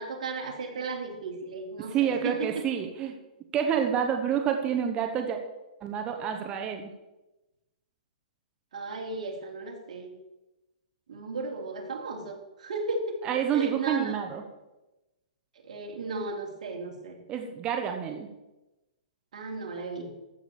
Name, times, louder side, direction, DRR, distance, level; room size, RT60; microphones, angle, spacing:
voice 1, 0.0-2.7 8.7-10.1 11.1-13.2 13.5-14.2 15.6-17.2 19.3-20.1, right 3 dB, 70° right, 2 dB, 3.1 m, -35 dB
voice 2, 1.9-3.2 3.5-5.4 5.8-6.9 13.2-14.4 17.3-18.3, right 8 dB, 20° right, 4 dB, 1.1 m, -28 dB
14.0 x 6.1 x 7.1 m, 1.0 s
hypercardioid pair, 150°, 4 cm